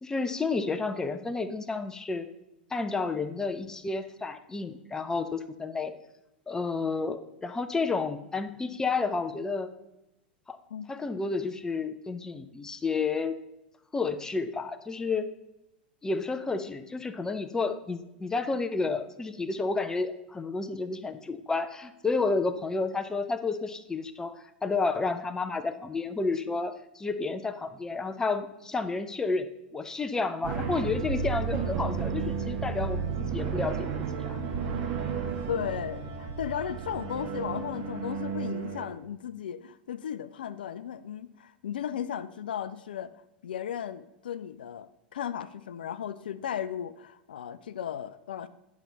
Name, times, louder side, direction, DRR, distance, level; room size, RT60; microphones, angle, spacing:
voice 1, 0.0-2.3 2.7-5.9 6.5-9.7 10.5-10.6 10.9-13.4 13.9-15.3 16.0-33.9 34.2-34.4, left 4 dB, 10° left, 9 dB, 0.6 m, -31 dB
sound 1, 30.4-38.9, right 6 dB, 40° right, 1.6 m, -32 dB
voice 2, 35.5-43.1 43.4-48.5, left 9 dB, 65° left, 12 dB, 0.4 m, -35 dB
9.8 x 6.0 x 3.9 m, 0.93 s
figure-of-eight pair, 90°, 5 cm